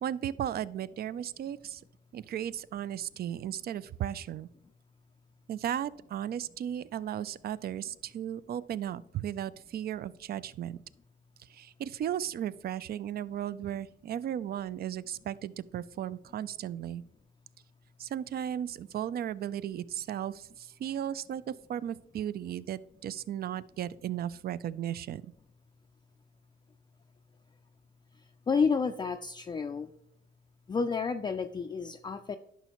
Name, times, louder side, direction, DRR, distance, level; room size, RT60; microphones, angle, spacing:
voice 1, 0.0-1.8 2.1-4.5 5.5-10.8 11.5-17.0 18.0-25.3, right 10 dB, 50° right, 18 dB, 0.4 m, -35 dB
voice 2, 28.1-29.9 30.7-32.4, left 5 dB, 25° left, 6 dB, 0.3 m, -30 dB
11.0 x 5.7 x 3.0 m, 0.81 s
cardioid pair, 90°, 20 cm